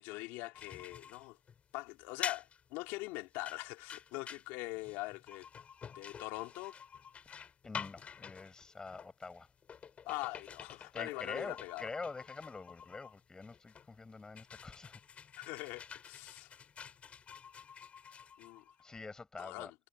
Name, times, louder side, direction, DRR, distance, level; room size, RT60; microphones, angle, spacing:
voice 1, 0.0-1.4 1.7-5.5 5.9-6.8 10.0-11.9 15.4-16.5 18.4-18.7 19.4-19.7, left 21 dB, 85° left, 3.2 m, -42 dB
sound 1, 0.5-19.0, left 7 dB, 35° left, 7.2 m, -49 dB
voice 2, 7.6-9.5 10.9-15.0 18.8-19.7, left 3 dB, 20° left, 7.5 m, -46 dB
supercardioid pair, 105°, 4 cm